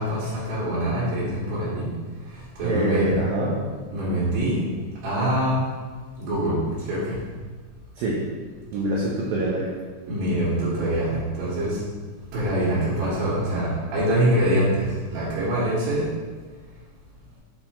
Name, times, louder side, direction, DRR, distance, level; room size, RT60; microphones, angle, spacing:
voice 1, 0.0-1.9 2.6-3.1 3.9-4.6 5.0-5.6 6.2-6.6 6.9-7.2 10.1-11.8 12.3-16.0, right 1 dB, 65° right, -11 dB, 3.7 m, -24 dB
voice 2, 2.6-3.6 8.0-8.2 8.7-9.7, right 1 dB, 85° right, -4 dB, 2.0 m, -24 dB
8.3 x 4.3 x 4.3 m, 1.4 s
omnidirectional pair, 5.4 m